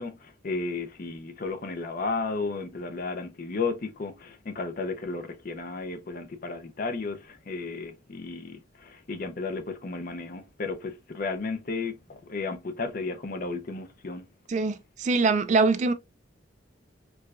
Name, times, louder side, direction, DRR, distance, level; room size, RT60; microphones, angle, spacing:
voice 1, 0.0-14.2, left 3 dB, 45° left, 0.5 m, -33 dB
voice 2, 14.5-15.9, right 3 dB, 40° right, 0.3 m, -23 dB
4.6 x 2.2 x 2.4 m
head